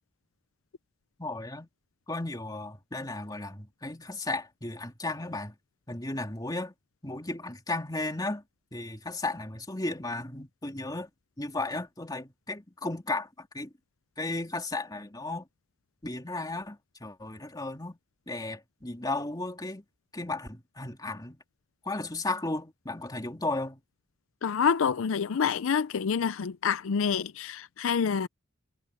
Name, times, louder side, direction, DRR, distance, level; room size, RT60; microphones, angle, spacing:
voice 1, 1.2-1.7 2.1-5.5 5.9-6.7 7.0-8.4 8.7-11.1 11.4-13.7 14.2-15.5 16.0-18.0 18.3-19.8 20.1-21.4 21.8-23.8, left 2 dB, 20° left, 2.8 m, -34 dB
voice 2, 24.4-28.3, left 6 dB, 80° left, 0.5 m, -27 dB
head